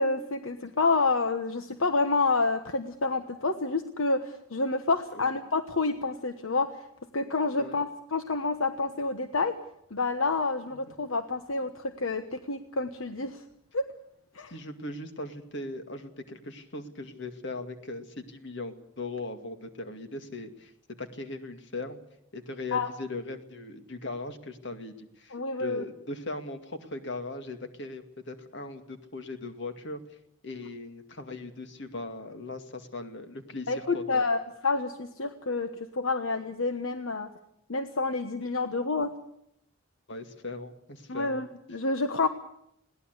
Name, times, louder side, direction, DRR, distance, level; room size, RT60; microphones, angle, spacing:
voice 1, 0.0-6.8 7.1-9.5 9.9-13.4 13.7-13.9 14.3-14.5 22.7-22.9 25.3-25.8 33.7-37.3 37.7-39.1 41.1-42.3, left 3 dB, 75° left, 8 dB, 1.2 m, -28 dB
voice 2, 14.5-22.0 22.3-30.0 30.4-34.2 40.1-41.4, left 2 dB, 55° left, 7 dB, 2.3 m, -39 dB
21.5 x 17.5 x 8.1 m, 0.76 s
head